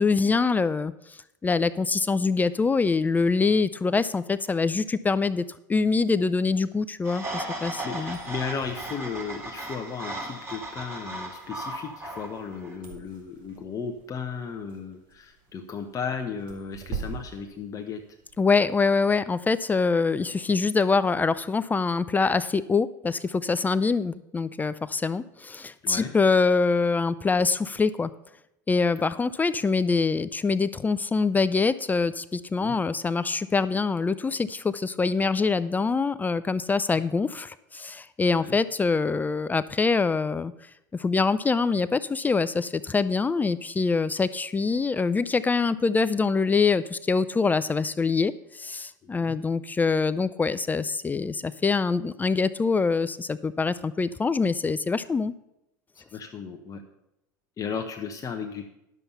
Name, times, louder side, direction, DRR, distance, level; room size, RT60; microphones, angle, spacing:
voice 1, 0.0-5.4 5.7-8.2 18.4-28.1 28.7-40.5 40.9-55.3, left 4 dB, 15° left, 15 dB, 0.4 m, -24 dB
sound 1, 7.0-12.7, right 1 dB, 20° right, 3.6 m, -36 dB
voice 2, 7.6-8.0 8.2-18.0 25.8-26.1 29.1-29.2 32.6-32.8 38.4-38.6 49.2-49.4 55.9-56.8 57.6-58.7, left 6 dB, 30° left, 4 dB, 1.0 m, -35 dB
sound 2, 8.0-18.5, right 5 dB, 50° right, 2.2 m, -44 dB
11.0 x 7.1 x 5.5 m, 0.85 s
hypercardioid pair, 90°, 11 cm